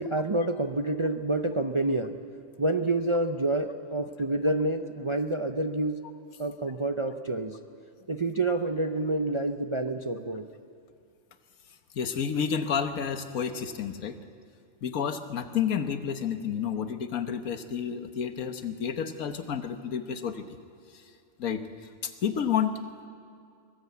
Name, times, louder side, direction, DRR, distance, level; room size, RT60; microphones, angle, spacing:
voice 1, 0.0-2.2 2.6-6.0 6.4-7.6 8.1-10.5, right 2 dB, 35° right, 7 dB, 0.5 m, -28 dB
voice 2, 11.9-14.2 14.8-20.4 21.4-21.6 22.0-22.7, left 7 dB, 85° left, 8 dB, 1.6 m, -30 dB
23.5 x 20.0 x 8.3 m, 2.4 s
omnidirectional pair, 1.4 m